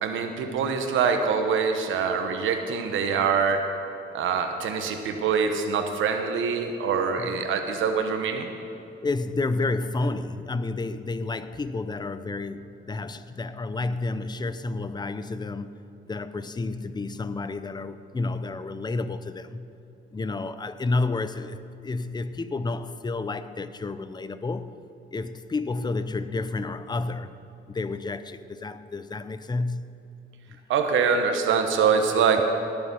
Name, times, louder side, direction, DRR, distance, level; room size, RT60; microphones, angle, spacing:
voice 1, 0.0-3.6 4.1-8.5 30.7-32.4, right 6 dB, 80° right, 1.1 m, -24 dB
voice 2, 9.0-15.8 16.1-19.7 20.1-24.7 25.1-27.3 27.7-29.9, left 3 dB, 20° left, 0.6 m, -30 dB
19.0 x 7.0 x 5.4 m
cardioid pair, 90°, 20 cm